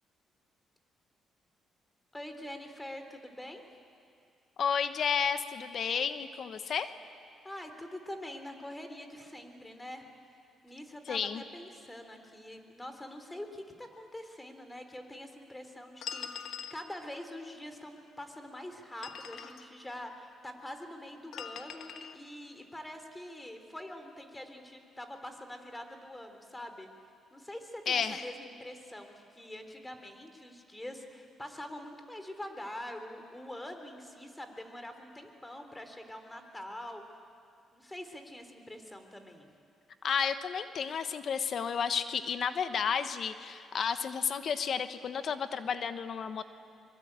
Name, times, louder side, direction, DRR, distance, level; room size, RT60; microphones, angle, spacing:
voice 1, 2.1-3.7 7.4-10.1 10.6-26.9 27.3-37.0 37.7-39.5, left 1 dB, 10° left, 6 dB, 3.6 m, -45 dB
voice 2, 4.6-6.9 11.1-11.4 27.9-28.2 40.0-46.4, left 7 dB, 60° left, 10 dB, 1.2 m, -32 dB
sound 1, 16.0-16.9 18.8-19.7 21.3-22.2, left 7 dB, 75° left, 1.6 m, -42 dB
24.5 x 23.5 x 9.0 m, 2.5 s
cardioid pair, 90°, 0 cm